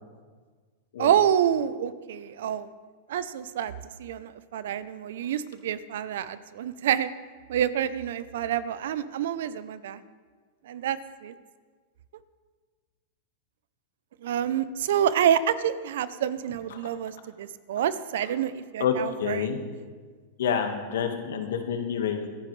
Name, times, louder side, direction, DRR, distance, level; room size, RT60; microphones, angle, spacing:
voice 1, 1.0-2.7 3.1-7.1 7.5-10.0 10.7-11.3 14.2-19.5 21.3-21.4, right 9 dB, 75° right, 15 dB, 0.7 m, -27 dB
voice 2, 18.8-19.6 20.4-22.3, left 7 dB, 80° left, 5 dB, 1.6 m, -28 dB
24.5 x 10.5 x 3.3 m, 1.5 s
hypercardioid pair, 115°, 0 cm